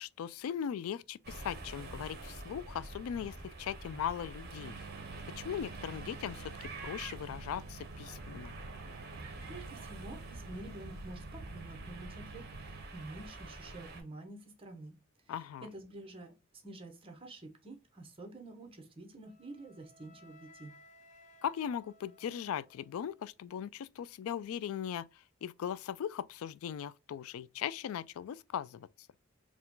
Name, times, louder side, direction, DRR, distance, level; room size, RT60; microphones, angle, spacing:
voice 1, 0.0-4.7 5.4-8.5 15.3-15.7 21.4-28.9, left 9 dB, 80° left, 0.3 m, -39 dB
sound 1, 1.2-14.0, right 2 dB, 50° right, 1.0 m, -46 dB
sound 2, 4.1-12.9, right 6 dB, 70° right, 0.6 m, -51 dB
voice 2, 9.4-15.0 15.2-20.7, right 2 dB, 25° right, 1.1 m, -49 dB
Wind instrument woodwind instrument, 19.2-23.3, left 1 dB, 35° left, 0.6 m, -61 dB
4.5 x 2.3 x 3.7 m
head